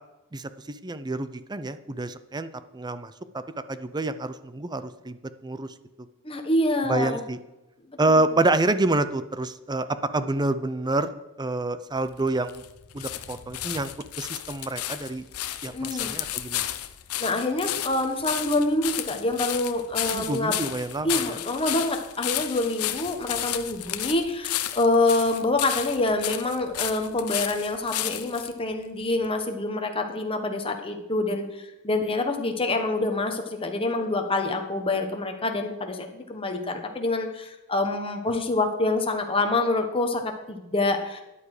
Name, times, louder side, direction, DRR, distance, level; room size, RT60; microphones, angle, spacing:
voice 1, 0.3-3.1 3.7-5.2 5.4-5.7 6.8-7.4 8.0-12.6 12.9-13.9 14.2-15.2 15.6-16.7 20.1-21.4, right 2 dB, 20° right, 13 dB, 0.6 m, -27 dB
voice 2, 6.2-7.2 15.7-16.1 17.2-20.6 21.0-31.5 31.8-41.2, left 2 dB, 25° left, 4 dB, 1.4 m, -26 dB
sound 1, 12.0-28.5 29.2-29.3, left 13 dB, 90° left, 0.7 m, -32 dB
13.0 x 9.8 x 5.0 m, 0.97 s
head